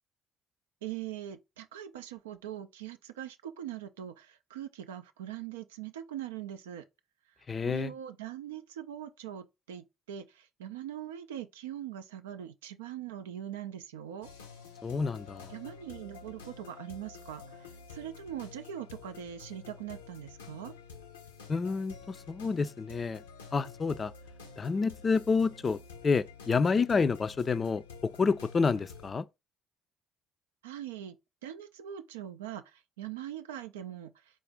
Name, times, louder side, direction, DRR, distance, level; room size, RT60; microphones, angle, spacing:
voice 1, 0.8-6.8 7.6-14.3 15.5-20.7 30.6-31.2 31.4-34.1, right 11 dB, 80° right, 0.3 m, -42 dB
voice 2, 7.5-7.9 14.8-15.5 21.5-23.2 23.5-24.1 24.6-25.8 26.0-29.2, left 5 dB, 35° left, 0.3 m, -29 dB
sound 1, 14.2-29.1, left 5 dB, 85° left, 0.6 m, -49 dB
4.0 x 2.5 x 3.4 m
figure-of-eight pair, 50°, 0 cm